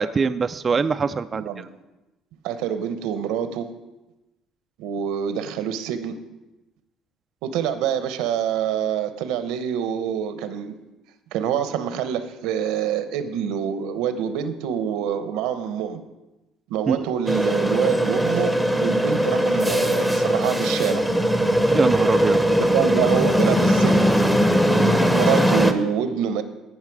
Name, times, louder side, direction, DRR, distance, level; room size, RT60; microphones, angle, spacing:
voice 1, 0.0-1.7 16.9-17.0 21.7-22.4, right 5 dB, 30° right, 9 dB, 0.3 m, -23 dB
voice 2, 1.3-1.7 2.4-3.7 4.8-6.2 7.4-10.8 11.3-16.0 16.7-21.0 22.6-24.2 24.8-26.4, right 8 dB, 85° right, 10 dB, 0.8 m, -26 dB
sound 1, 17.3-25.7, equal, 5° left, 0.8 m, -20 dB
16.5 x 5.6 x 4.7 m, 1.0 s
cardioid pair, 115°, 0 cm